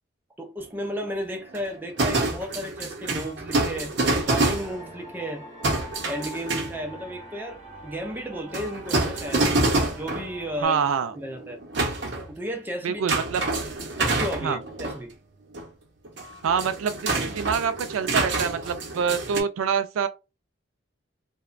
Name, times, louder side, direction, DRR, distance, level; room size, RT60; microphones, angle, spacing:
voice 1, 0.4-4.0 4.3-5.5 6.0-9.5 9.9-10.8 11.1-11.6 12.3-13.0 14.0-15.1, equal, 10° right, 0.4 m, -33 dB
sound 1, 0.6-0.9 1.3-5.1 5.6-7.0 8.5-10.3 11.0-12.3 13.1-15.0 15.5-15.6 16.0-19.4, right 2 dB, 55° right, 0.7 m, -27 dB
sound 2, 3.5-10.7, equal, 25° left, 1.3 m, -44 dB
voice 2, 10.6-11.1 12.8-13.4 14.4-14.6 16.4-20.1, right 6 dB, 80° right, 0.3 m, -26 dB
2.8 x 2.2 x 2.4 m
head